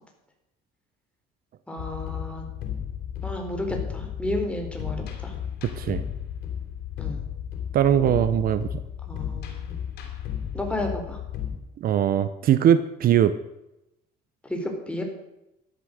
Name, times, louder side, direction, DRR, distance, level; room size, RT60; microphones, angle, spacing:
voice 1, 1.7-2.5 3.2-5.0 5.2-5.3 7.0-7.2 9.1-9.8 10.5-11.2 14.4-15.0, left 1 dB, 5° left, 2 dB, 4.0 m, -32 dB
sound 1, 1.8-11.6, left 9 dB, 80° left, 3.5 m, -34 dB
voice 2, 7.7-8.7 11.8-13.4, right 10 dB, 60° right, 13 dB, 0.9 m, -20 dB
13.5 x 11.5 x 6.6 m, 0.91 s
cardioid pair, 110°, 17 cm